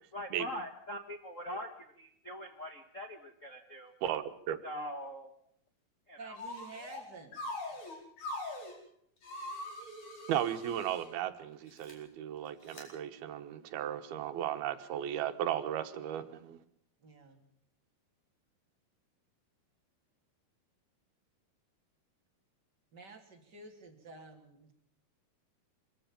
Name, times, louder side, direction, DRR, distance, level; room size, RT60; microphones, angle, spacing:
voice 1, 0.1-3.9 4.6-5.3 6.1-6.4, equal, 85° left, 2 dB, 0.7 m, -42 dB
voice 2, 4.0-4.6 10.3-16.6, right 10 dB, 85° right, 9 dB, 3.2 m, -35 dB
voice 3, 6.2-7.5 17.0-17.4 22.9-24.7, right 3 dB, 30° right, 2 dB, 3.3 m, -50 dB
sound 1, 6.4-7.0 7.3-8.7 9.2-11.1 11.7-11.9 12.7-12.8, left 2 dB, 50° left, 5.9 m, -42 dB
24.0 x 15.0 x 7.4 m, 0.69 s
omnidirectional pair, 4.3 m